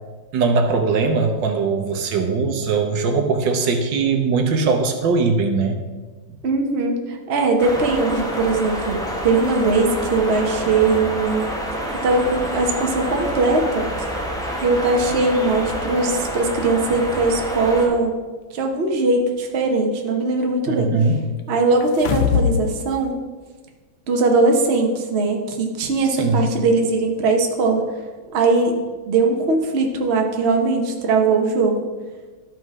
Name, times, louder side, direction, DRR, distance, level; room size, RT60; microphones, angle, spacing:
voice 1, 0.3-5.8 20.7-21.2 26.2-26.5, right 4 dB, 75° right, 5 dB, 1.6 m, -20 dB
voice 2, 6.4-11.4 12.0-13.8 14.6-18.1 18.5-20.9 21.5-23.1 24.1-27.8 28.3-28.7 29.1-31.8, right 3 dB, 45° right, 2 dB, 1.0 m, -20 dB
sound 1, 7.6-17.9, equal, 5° left, 0.7 m, -28 dB
sound 2, 21.8-22.7 23.0-23.1, left 7 dB, 85° left, 1.4 m, -20 dB
12.0 x 4.3 x 4.7 m, 1.4 s
omnidirectional pair, 2.0 m